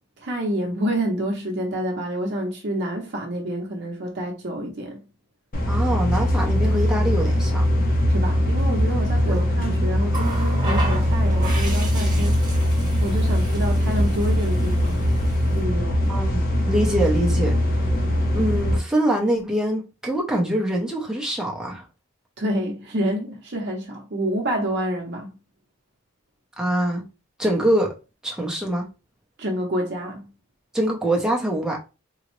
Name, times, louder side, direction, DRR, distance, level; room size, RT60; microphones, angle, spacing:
voice 1, 0.2-5.0 8.1-12.7 13.0-15.0 15.5-16.1 22.4-25.4 29.4-30.3, equal, 50° right, 0.6 m, -28 dB
sound 1, 5.5-18.8, equal, 40° left, 0.6 m, -21 dB
voice 2, 5.7-7.6 9.3-9.4 16.1-17.6 18.3-21.9 26.6-27.0 27.4-27.9 28.2-28.9 30.7-31.8, right 1 dB, 5° right, 0.5 m, -24 dB
Water tap faucet, 10.1-15.6 16.8-17.1, right 2 dB, 20° right, 1.1 m, -34 dB
3.7 x 2.0 x 3.0 m
head